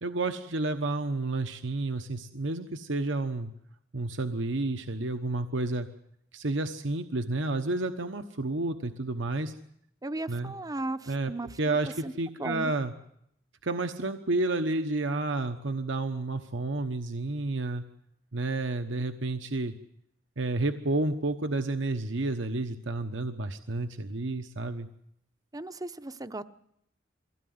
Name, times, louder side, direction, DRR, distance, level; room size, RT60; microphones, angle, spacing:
voice 1, 0.0-3.5 3.9-5.9 6.3-9.5 10.3-10.5 11.1-11.3 11.6-12.9 13.6-17.8 18.3-19.7 20.4-24.9, right 2 dB, 70° right, 7 dB, 1.1 m, -30 dB
voice 2, 10.0-11.8 12.0-12.1 12.4-12.7 25.5-26.4, right 2 dB, 20° right, 11 dB, 0.8 m, -36 dB
23.0 x 16.5 x 9.5 m, 0.75 s
head